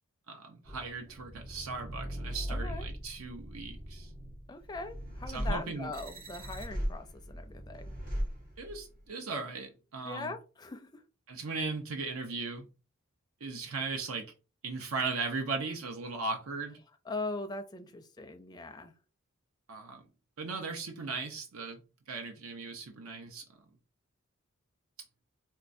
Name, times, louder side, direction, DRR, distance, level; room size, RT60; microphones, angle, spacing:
voice 1, 0.3-4.1 5.3-5.9 8.6-10.3 11.3-12.7 13.4-14.3 14.6-16.8 19.7-20.0 20.4-23.5, right 4 dB, 80° right, 0.6 m, -37 dB
sound 1, 0.6-9.0, equal, 40° right, 1.2 m, -39 dB
voice 2, 2.5-2.9 4.5-8.0 10.0-11.0 17.1-18.9, left 3 dB, 20° left, 0.4 m, -41 dB
4.4 x 2.2 x 2.5 m
head